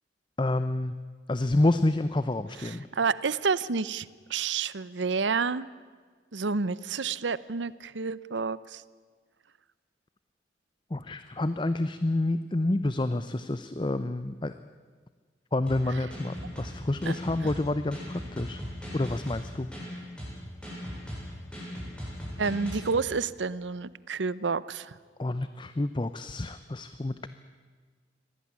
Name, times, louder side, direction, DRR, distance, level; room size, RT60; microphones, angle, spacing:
voice 1, 0.4-0.9 1.3-2.9 10.9-14.5 15.5-18.6 18.9-19.7 25.2-27.3, left 2 dB, 25° left, 12 dB, 0.6 m, -28 dB
voice 2, 2.6-5.7 6.3-8.8 17.0-17.2 22.4-25.0, right 5 dB, 85° right, 18 dB, 0.7 m, -29 dB
sound 1, 15.7-22.9, equal, 5° left, 7.9 m, -38 dB
24.0 x 18.0 x 9.8 m, 1.5 s
head